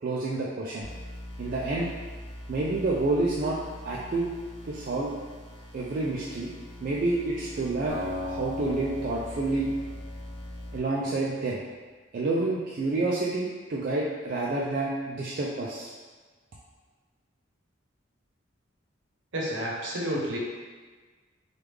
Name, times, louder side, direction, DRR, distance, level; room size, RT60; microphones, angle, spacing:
voice 1, 0.0-0.9 1.4-1.9 2.5-3.6 3.8-4.3 4.6-5.1 5.7-6.5 6.8-8.0 8.2-9.7 10.7-11.6 12.1-15.9, right 2 dB, 45° right, -5 dB, 0.3 m, -28 dB
sound 1, 0.8-10.8, left 1 dB, 30° left, 0.6 m, -43 dB
Acoustic guitar, 7.9-11.1, left 2 dB, 80° left, 0.9 m, -38 dB
voice 2, 19.3-20.4, equal, 65° right, -4 dB, 0.8 m, -30 dB
3.4 x 2.3 x 3.1 m, 1.4 s
head